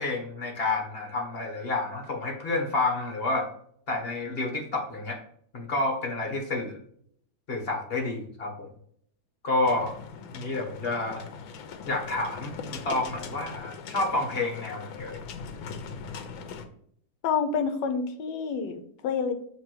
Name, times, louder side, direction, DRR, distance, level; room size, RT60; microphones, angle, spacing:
voice 1, 0.0-3.5 3.9-5.2 5.5-6.8 7.5-8.7 9.4-9.9 10.3-11.2 11.9-15.2, left 2 dB, 35° left, 2 dB, 1.4 m, -29 dB
sound 1, 9.7-16.7, left 5 dB, 85° left, 1.5 m, -40 dB
voice 2, 17.2-19.3, left 6 dB, 70° left, 7 dB, 1.4 m, -28 dB
7.0 x 3.4 x 4.5 m, 0.65 s
omnidirectional pair, 2.1 m